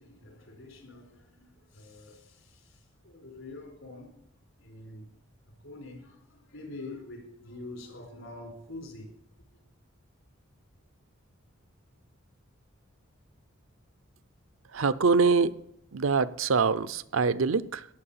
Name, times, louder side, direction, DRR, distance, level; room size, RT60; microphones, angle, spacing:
voice 1, 0.0-4.2 4.6-5.1 5.5-9.1, left 2 dB, 75° left, 4.6 m, -46 dB
voice 2, 14.7-15.6 15.9-17.9, right 4 dB, 70° right, 0.6 m, -24 dB
18.0 x 7.5 x 5.7 m
head